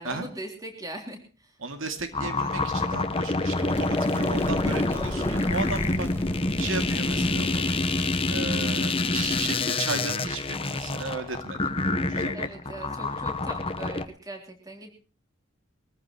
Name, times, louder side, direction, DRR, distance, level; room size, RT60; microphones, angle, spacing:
voice 1, 0.0-1.6 12.3-14.9, right 1 dB, 15° right, 4 dB, 3.5 m, -40 dB
voice 2, 1.6-6.1 6.6-7.8 8.3-11.7 12.1-12.6, right 3 dB, 75° right, 7 dB, 2.4 m, -35 dB
sound 1, 2.1-14.0, left 2 dB, 25° left, 1.0 m, -27 dB
sound 2, 3.5-9.5, left 1 dB, 10° left, 1.7 m, -33 dB
23.0 x 14.5 x 3.0 m, 0.38 s
head